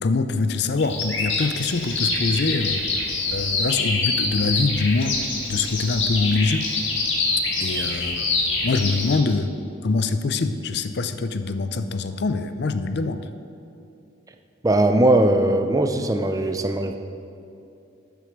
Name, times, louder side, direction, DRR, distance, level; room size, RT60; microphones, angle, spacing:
voice 1, 0.0-2.9 3.3-5.2 5.5-6.7 7.6-8.3 8.6-9.5 9.8-13.2, left 3 dB, 60° left, 10 dB, 0.5 m, -24 dB
Bird vocalization bird call bird song, 0.8-9.2, left 3 dB, 85° left, 2.0 m, -25 dB
voice 2, 14.6-17.0, right 1 dB, 20° right, 7 dB, 0.5 m, -19 dB
12.5 x 6.8 x 4.7 m, 2.7 s
head